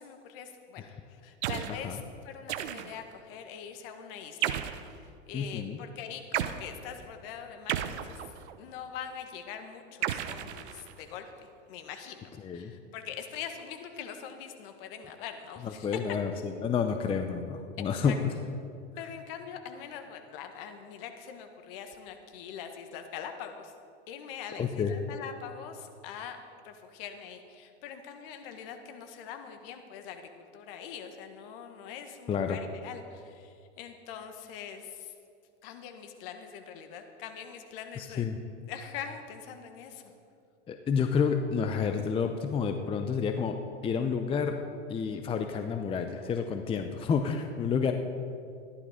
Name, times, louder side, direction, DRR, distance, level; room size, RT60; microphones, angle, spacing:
voice 1, 0.0-2.0 2.2-4.6 4.9-8.2 8.6-16.0 17.8-18.1 19.0-23.7 24.1-26.4 26.6-35.1 35.6-38.2 38.7-40.0, left 8 dB, 55° left, 6 dB, 1.6 m, -43 dB
sound 1, 1.4-1.8 2.5-3.1 4.4-4.9 6.3-6.6 7.7-8.6 10.0-11.1, right 11 dB, 75° right, 0.9 m, -33 dB
voice 2, 5.3-5.8 12.4-12.7 15.6-18.2 24.6-24.9 32.3-32.6 38.0-38.4 40.7-43.6 43.8-44.6 44.9-47.9, left 6 dB, 15° left, 6 dB, 0.6 m, -30 dB
14.0 x 11.5 x 5.0 m, 2.4 s
hypercardioid pair, 120°, 35 cm